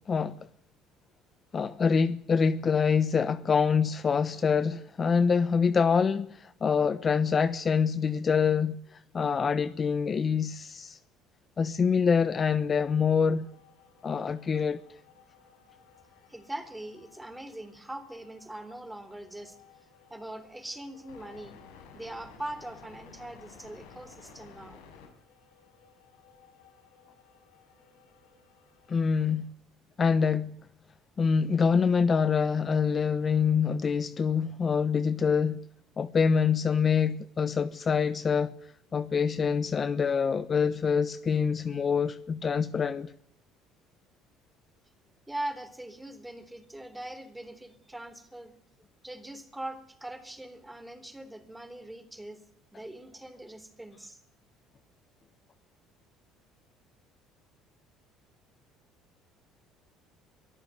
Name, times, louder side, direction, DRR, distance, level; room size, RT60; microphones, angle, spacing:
voice 1, 1.5-8.7 9.1-11.0 11.6-13.5 14.0-14.8 28.9-29.5 30.0-30.5 31.2-35.6 36.0-38.6 38.9-43.1, left 6 dB, 35° left, 1.1 m, -25 dB
sound 1, 13.4-29.1, left 6 dB, 90° left, 7.2 m, -56 dB
voice 2, 16.3-19.6 20.1-21.6 21.9-24.8 45.3-48.5 49.0-52.4 52.7-54.2, right 1 dB, 10° right, 3.7 m, -41 dB
24.0 x 14.0 x 9.3 m
supercardioid pair, 95°, 0 cm